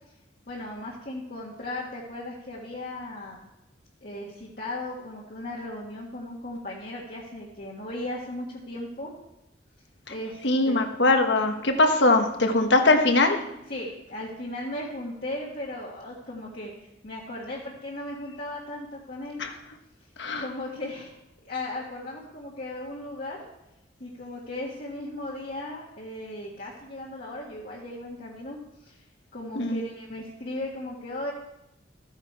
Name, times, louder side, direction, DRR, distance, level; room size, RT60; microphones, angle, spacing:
voice 1, 0.5-3.5 4.0-9.1 10.1-10.8 13.7-16.7 17.0-19.4 20.3-21.1 21.4-23.4 24.0-29.0 29.3-31.3, left 1 dB, 50° left, -5 dB, 1.6 m, -36 dB
voice 2, 10.4-13.4 19.4-19.5 20.2-20.5 29.5-29.8, left 2 dB, 75° left, 5 dB, 1.2 m, -21 dB
14.0 x 9.2 x 4.7 m, 0.91 s
head